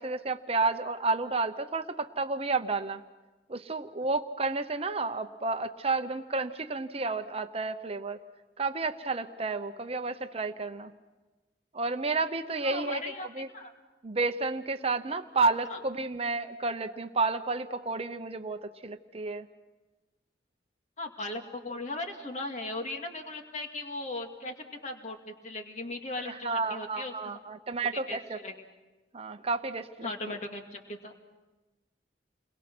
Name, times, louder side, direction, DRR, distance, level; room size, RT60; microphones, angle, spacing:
voice 1, 0.0-3.0 3.5-8.2 8.6-10.9 11.7-13.0 13.3-13.5 14.0-19.5 26.2-28.4 29.1-30.4, right 3 dB, 35° right, 8 dB, 0.8 m, -31 dB
voice 2, 12.6-13.3 13.5-13.7 15.7-15.8 21.0-24.6 24.8-27.4 28.1-28.5 30.0-31.1, left 2 dB, 40° left, 4 dB, 2.2 m, -38 dB
30.0 x 22.5 x 6.1 m, 1.1 s
head